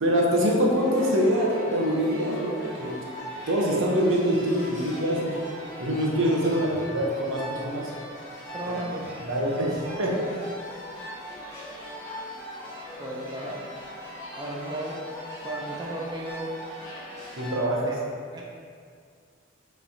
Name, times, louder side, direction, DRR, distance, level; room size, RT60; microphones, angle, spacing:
voice 1, 0.0-2.9 3.5-5.3 5.8-7.9 9.2-10.2 17.4-18.0, equal, 75° right, -2 dB, 0.8 m, -24 dB
sound 1, 0.7-17.6, equal, 15° left, 1.2 m, -40 dB
voice 2, 8.5-9.1 9.7-9.8 13.0-13.7 14.4-15.0 15.4-16.5 17.9-18.0 18.3-18.4, right 1 dB, 20° right, -3 dB, 0.5 m, -34 dB
5.8 x 3.2 x 2.7 m, 2.1 s
head